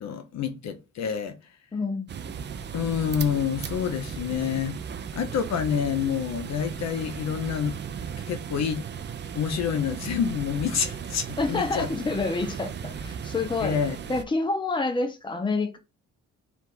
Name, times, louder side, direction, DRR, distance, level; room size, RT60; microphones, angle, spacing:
voice 1, 0.0-1.4 2.7-4.8 5.1-7.8 8.3-8.8 9.3-11.9 13.6-14.0, left 7 dB, 60° left, 0.6 m, -28 dB
voice 2, 1.7-2.6 11.4-13.8 14.1-15.8, left 3 dB, 15° left, 0.7 m, -28 dB
sound 1, 2.1-14.2, right 7 dB, 35° right, 0.4 m, -36 dB
3.5 x 2.4 x 4.5 m
cardioid pair, 90°, 30 cm